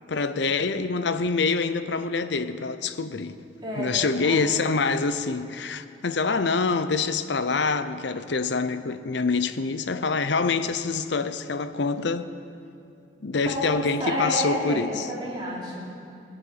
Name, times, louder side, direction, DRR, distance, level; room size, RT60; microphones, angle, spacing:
voice 1, 0.1-3.4 3.7-12.3 13.2-15.1, left 4 dB, 70° left, 0.6 m, -26 dB
voice 2, 3.6-4.4 13.4-13.7 14.0-15.9, equal, 25° right, 3.2 m, -30 dB
18.0 x 7.2 x 8.7 m
head